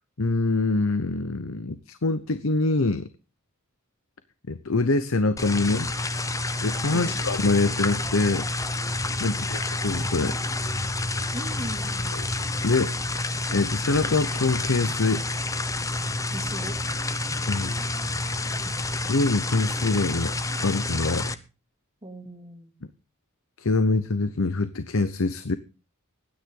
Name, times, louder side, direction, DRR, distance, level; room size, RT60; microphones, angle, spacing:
voice 1, 0.2-3.1 4.5-5.9 6.6-8.5 9.2-10.4 12.1-12.3 12.6-12.9 13.5-15.2 17.5-17.7 19.1-20.4 20.6-21.3 23.6-25.6, left 3 dB, 70° left, 12 dB, 0.9 m, -24 dB
sound 1, 5.4-21.3, left 2 dB, 15° left, 0.8 m, -29 dB
voice 2, 11.3-12.1 16.3-16.8 22.0-22.7, right 1 dB, 25° right, 4 dB, 2.6 m, -38 dB
20.5 x 9.8 x 3.8 m, 0.32 s
head